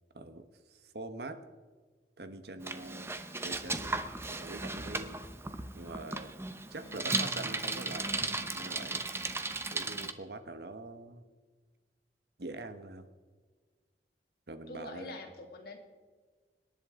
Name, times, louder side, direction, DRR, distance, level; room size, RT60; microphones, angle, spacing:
voice 1, 0.1-1.4 2.2-3.1 3.4-5.2 5.7-6.3 6.7-9.0 9.7-11.3 12.4-13.0 14.5-15.2, right 2 dB, 65° right, 9 dB, 1.2 m, -44 dB
Bicycle, 2.6-10.1, right 3 dB, 15° right, 0.8 m, -36 dB
voice 2, 6.8-7.2 14.7-15.8, left 2 dB, 60° left, 2 dB, 2.7 m, -45 dB
25.5 x 11.0 x 3.7 m, 1.4 s
head